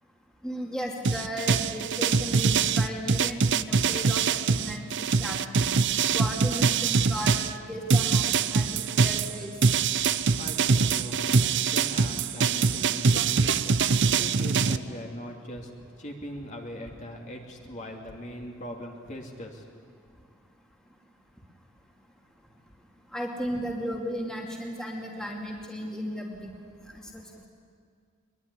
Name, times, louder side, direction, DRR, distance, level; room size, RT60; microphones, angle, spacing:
voice 1, 0.4-5.6 6.1-9.5 23.1-26.5 27.1-27.2, equal, 5° left, -1 dB, 2.5 m, -35 dB
sound 1, 1.0-7.5 7.9-14.8, right 5 dB, 55° right, 0.7 m, -24 dB
voice 2, 10.4-13.8 14.2-15.7 16.0-19.6, equal, 35° left, 1 dB, 2.7 m, -40 dB
22.5 x 22.0 x 9.9 m, 2.1 s
head